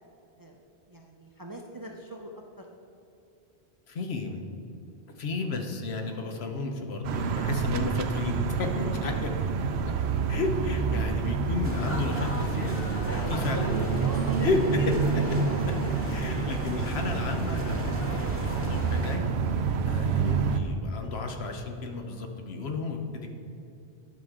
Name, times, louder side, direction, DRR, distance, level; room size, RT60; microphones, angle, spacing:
voice 1, 0.9-2.7 13.1-14.9, right 1 dB, 25° right, 1 dB, 0.5 m, -42 dB
voice 2, 3.9-4.4 5.2-9.3 10.3-12.8 13.3-13.9 14.4-14.8 16.1-19.3 19.8-23.3, left 3 dB, 75° left, 4 dB, 1.1 m, -32 dB
sound 1, 7.0-20.6, right 5 dB, 80° right, 0.8 m, -28 dB
sound 2, 11.6-19.2, left 1 dB, 15° left, 1.1 m, -35 dB
10.5 x 6.3 x 3.7 m, 2.8 s
omnidirectional pair, 1.1 m